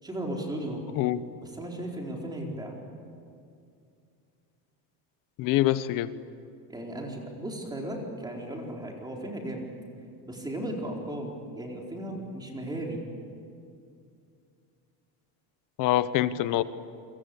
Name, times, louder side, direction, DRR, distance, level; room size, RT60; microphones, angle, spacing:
voice 1, 0.0-0.8 1.4-2.7 6.7-9.7 10.2-13.0, right 1 dB, 10° right, 0 dB, 4.2 m, -36 dB
voice 2, 5.4-6.1 15.8-16.6, left 14 dB, 45° left, 14 dB, 1.1 m, -25 dB
28.0 x 25.0 x 8.5 m, 2.4 s
cardioid pair, 165°, 47 cm